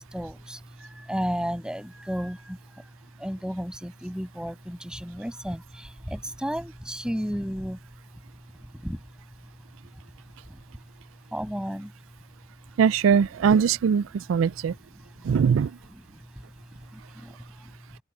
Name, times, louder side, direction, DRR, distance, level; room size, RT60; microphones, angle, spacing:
voice 1, 0.0-2.9 3.2-7.8 8.7-9.0 10.5-10.6 11.3-11.9 14.4-14.5 15.0-15.3 15.9-18.0, equal, 5° right, 7.4 m, -34 dB
voice 2, 12.8-14.7 15.2-15.7, right 6 dB, 90° right, 0.3 m, -21 dB
open air
head